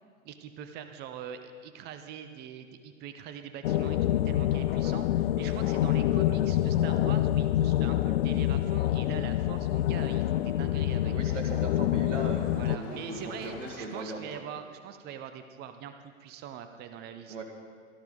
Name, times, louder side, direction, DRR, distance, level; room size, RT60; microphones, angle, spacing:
voice 1, 0.2-11.1 12.5-17.4, right 8 dB, 25° right, 8 dB, 0.7 m, -43 dB
sound 1, 3.6-12.8, left 13 dB, 55° left, 0.4 m, -26 dB
Car passing by, 8.2-14.4, left 8 dB, 30° left, 1.0 m, -51 dB
voice 2, 11.1-14.4 17.3-17.4, right 3 dB, 65° right, 3 dB, 2.1 m, -38 dB
17.0 x 13.0 x 4.0 m, 2.1 s
figure-of-eight pair, 95°, 39 cm